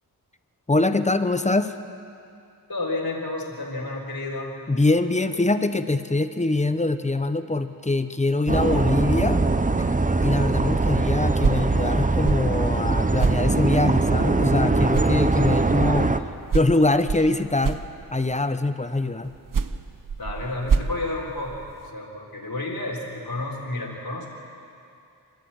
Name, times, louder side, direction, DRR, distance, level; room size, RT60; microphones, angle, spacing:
voice 1, 0.7-1.7 4.7-9.4 10.2-16.1 16.5-17.8 18.1-19.3, left 2 dB, 20° left, 10 dB, 0.8 m, -23 dB
voice 2, 2.7-4.5 20.2-21.7 21.9-24.3, left 2 dB, 65° left, -1 dB, 3.8 m, -31 dB
sound 1, 8.5-16.2, right 3 dB, 20° right, 0.8 m, -22 dB
sound 2, 11.2-14.6 14.9-18.4 19.3-21.9, right 5 dB, 55° right, 0.9 m, -29 dB
25.5 x 13.5 x 8.8 m, 2.6 s
wide cardioid pair, 100°, 39 cm